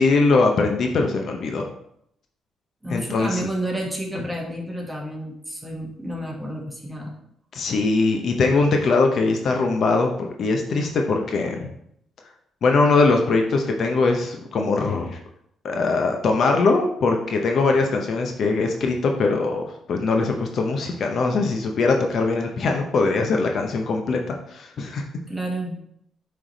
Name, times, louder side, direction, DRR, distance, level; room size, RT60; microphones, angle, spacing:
voice 1, 0.0-1.6 2.9-3.5 4.1-4.2 7.5-11.7 12.6-15.2 15.6-25.0, left 3 dB, 60° left, 2 dB, 0.8 m, -21 dB
voice 2, 2.8-7.1 25.3-25.7, right 1 dB, 5° right, -1 dB, 1.7 m, -30 dB
7.3 x 3.4 x 4.0 m, 0.74 s
cardioid pair, 90°, 0 cm